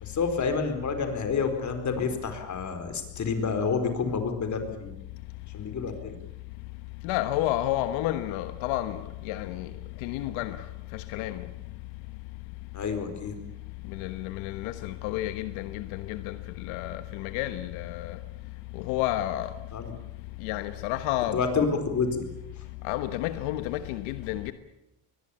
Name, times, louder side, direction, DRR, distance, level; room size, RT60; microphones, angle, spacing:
voice 1, 0.0-4.9 5.5-6.2 12.7-13.3 19.7-19.9 21.3-22.2, left 5 dB, 40° left, 4.6 m, -28 dB
voice 2, 7.0-9.7 10.0-10.6 10.9-11.5 13.8-18.2 18.7-19.5 20.4-21.4 22.8-24.5, left 14 dB, 90° left, 1.3 m, -31 dB
22.5 x 18.5 x 8.7 m
cardioid pair, 115°, 46 cm